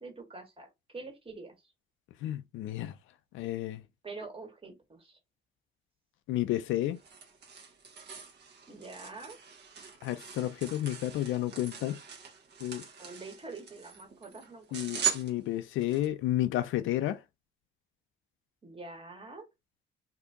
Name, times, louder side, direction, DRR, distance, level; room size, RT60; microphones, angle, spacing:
voice 1, 0.0-1.5 4.0-5.2 8.7-9.4 13.0-14.6 14.9-15.1 18.6-19.5, right 3 dB, 25° right, 1.5 m, -45 dB
voice 2, 2.2-3.0 3.3-3.8 6.3-7.0 10.0-12.0 12.6-12.8 14.7-17.2, left 14 dB, 85° left, 0.4 m, -31 dB
sound 1, 6.5-16.1, right 8 dB, 55° right, 1.1 m, -40 dB
2.7 x 2.6 x 3.5 m
cardioid pair, 90°, 20 cm